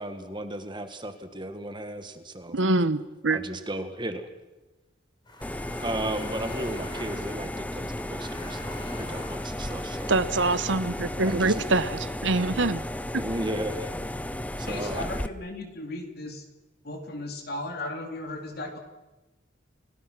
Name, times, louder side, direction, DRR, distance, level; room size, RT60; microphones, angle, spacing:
voice 1, 0.0-2.6 3.3-4.3 5.8-10.2 11.2-11.7 13.1-13.9 14.6-15.0, right 1 dB, 25° right, 8 dB, 1.8 m, -35 dB
voice 2, 2.5-3.4 10.1-11.9 12.2-12.8, right 2 dB, 75° right, 14 dB, 1.1 m, -24 dB
sound 1, 5.3-11.5, left 1 dB, 25° left, 3.8 m, -46 dB
sound 2, 5.4-15.3, left 1 dB, 10° left, 0.7 m, -34 dB
voice 3, 14.7-16.4 16.8-18.8, left 2 dB, 55° left, 3 dB, 3.7 m, -36 dB
29.0 x 18.5 x 6.2 m, 1.1 s
head